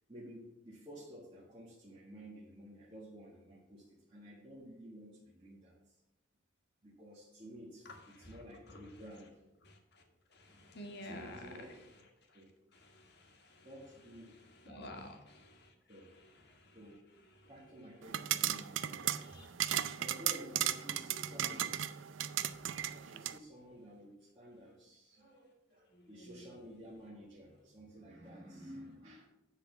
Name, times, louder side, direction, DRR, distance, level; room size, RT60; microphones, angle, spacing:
voice 1, 0.1-6.0 6.8-9.4 10.5-10.8 11.0-11.7 12.3-12.5 13.6-14.3 14.6-14.9 15.9-16.2 16.7-17.1 17.4-19.6 20.0-22.1 22.9-29.3, equal, 25° right, -8 dB, 1.7 m, -52 dB
voice 2, 7.8-9.0 9.6-10.0 10.3-12.4 12.7-13.7 14.2-17.8 19.2-19.5 25.9-26.5, left 1 dB, 60° left, 3 dB, 1.6 m, -53 dB
sound 1, 18.0-23.4, right 11 dB, 75° right, 0.5 m, -36 dB
9.8 x 4.1 x 6.8 m, 0.92 s
head